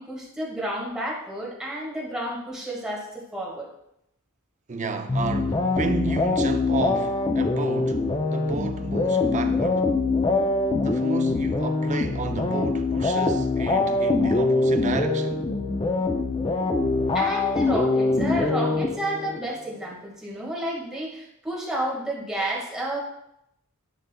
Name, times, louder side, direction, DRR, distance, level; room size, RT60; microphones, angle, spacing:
voice 1, 0.0-3.7 17.1-23.0, right 1 dB, 5° right, 1.7 m, -31 dB
voice 2, 4.7-9.9 10.8-15.5, right 3 dB, 35° right, 0.5 m, -31 dB
sound 1, 5.1-19.4, left 3 dB, 25° left, 0.4 m, -24 dB
10.0 x 5.4 x 2.2 m
head